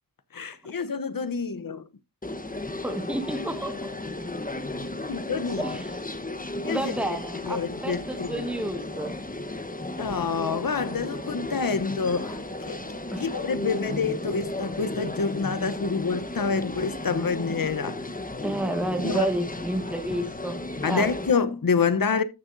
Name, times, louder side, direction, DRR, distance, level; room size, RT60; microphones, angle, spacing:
voice 1, 0.3-1.9 5.1-5.6 6.6-6.9 7.5-8.5 10.0-12.8 13.2-18.2 19.0-19.3 20.8-22.2, left 5 dB, 60° left, 0.8 m, -27 dB
sound 1, 2.2-21.3, left 2 dB, 20° left, 1.0 m, -34 dB
voice 2, 2.8-3.9 5.6-6.0 6.7-9.2 13.1-13.2 18.4-20.6 20.9-21.1, right 1 dB, 5° right, 1.2 m, -30 dB
13.5 x 6.5 x 2.6 m
wide cardioid pair, 45°, 38 cm